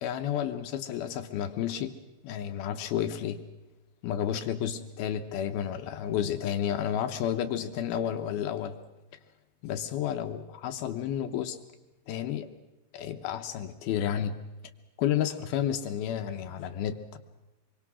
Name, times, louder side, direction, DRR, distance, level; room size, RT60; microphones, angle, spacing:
voice 1, 0.0-2.0 2.2-3.4 4.0-8.8 9.6-11.6 12.1-12.5 12.9-14.4 15.0-17.2, left 10 dB, 70° left, 7 dB, 2.4 m, -31 dB
26.0 x 24.0 x 6.2 m, 1.1 s
omnidirectional pair, 5.5 m